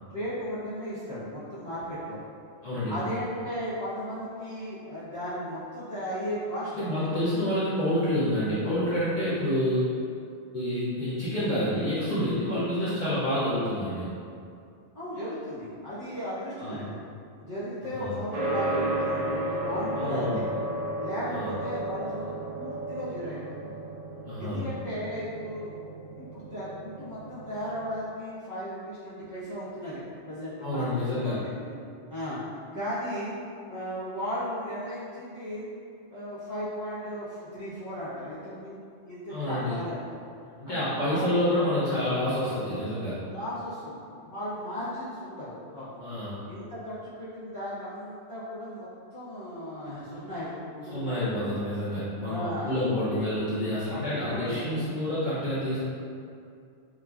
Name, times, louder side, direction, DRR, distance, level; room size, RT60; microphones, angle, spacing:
voice 1, 0.1-2.2 2.9-7.1 14.9-16.9 17.4-20.5 21.0-23.7 24.4-25.8 26.1-31.7 32.1-32.4 32.7-33.3 33.7-35.7 36.1-38.8 39.0-40.2 40.7-41.3 43.3-46.0 46.5-51.3 52.2-53.3 53.9-54.8, equal, 20° right, -15 dB, 0.8 m, -36 dB
voice 2, 6.7-10.0 10.5-14.1 16.6-16.9 17.9-18.2 19.9-20.4 21.3-21.6 24.2-24.6 30.6-31.4 39.3-39.8 40.6-43.3 46.0-46.4 50.9-55.8, left 1 dB, 50° left, -12 dB, 0.7 m, -28 dB
sound 1, 18.3-28.0, right 1 dB, 90° right, 1.0 m, -33 dB
2.9 x 2.3 x 2.4 m, 2.4 s
omnidirectional pair, 1.2 m